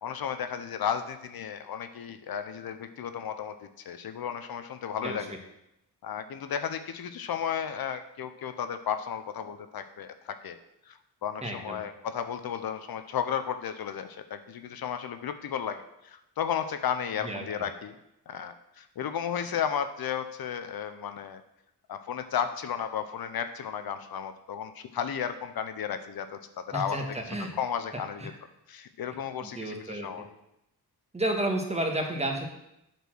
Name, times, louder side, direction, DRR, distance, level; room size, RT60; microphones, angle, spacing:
voice 1, 0.0-5.4 6.0-10.6 10.9-17.9 18.3-21.4 21.9-26.4 26.7-27.0 27.5-28.3 28.7-30.3, left 8 dB, 65° left, 9 dB, 0.6 m, -34 dB
voice 2, 11.4-11.8 17.2-17.4 26.7-27.5 28.2-28.3 29.4-30.1 31.1-32.5, right 1 dB, 15° right, 2 dB, 1.4 m, -31 dB
8.2 x 4.4 x 6.2 m, 0.85 s
wide cardioid pair, 110°, 40 cm